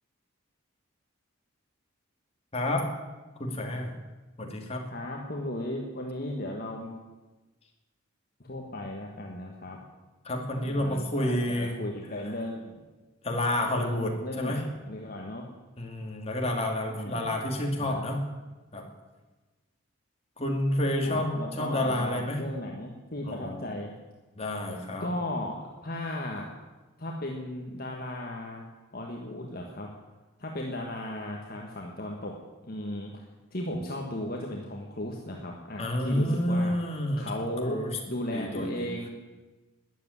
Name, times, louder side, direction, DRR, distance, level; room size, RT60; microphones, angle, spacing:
voice 1, 2.5-2.9 3.4-4.0 4.4-4.8 10.2-11.8 13.2-14.6 15.8-18.2 18.7-18.8 20.4-22.4 23.3-23.7 24.4-25.1 35.8-37.3 37.6-37.9 38.3-38.9, left 1 dB, 30° left, 1 dB, 2.5 m, -29 dB
voice 2, 4.9-6.9 8.4-9.8 10.6-12.8 13.7-15.4 16.9-17.3 17.8-18.0 21.0-23.9 25.0-25.6 25.8-26.5 27.0-28.7 28.9-29.9 30.4-32.3 32.7-33.2 33.5-36.7 37.2-37.8 38.1-39.1, left 1 dB, 45° left, 0 dB, 1.6 m, -36 dB
13.0 x 9.7 x 9.8 m, 1.2 s
head